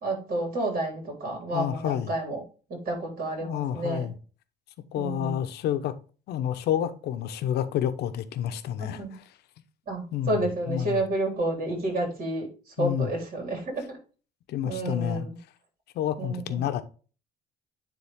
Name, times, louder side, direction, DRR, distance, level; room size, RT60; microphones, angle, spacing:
voice 1, 0.0-2.4 2.7-4.1 5.0-5.4 8.8-9.1 9.9-14.0 14.6-15.4 16.2-16.6, right 1 dB, 55° right, 3.8 m, -30 dB
voice 2, 1.5-2.1 3.4-4.1 4.9-5.9 6.3-9.2 10.1-11.0 12.8-13.1 14.5-15.3 15.9-16.8, left 10 dB, 75° left, 0.9 m, -29 dB
9.8 x 3.7 x 3.6 m
cardioid pair, 110°, 17 cm